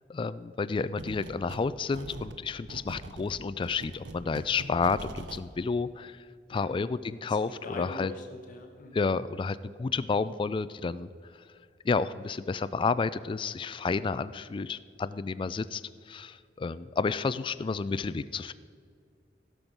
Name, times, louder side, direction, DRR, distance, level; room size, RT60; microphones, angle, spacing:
voice 1, 0.1-6.2 6.5-8.1 8.9-11.1 11.8-18.5, left 4 dB, 30° left, 15 dB, 0.3 m, -31 dB
sound 1, 1.0-1.7 1.9-5.5, right 2 dB, 85° right, 0.7 m, -43 dB
voice 2, 6.5-6.8 7.3-9.0, left 2 dB, 50° left, 3 dB, 1.1 m, -42 dB
16.0 x 6.1 x 5.2 m, 2.1 s
head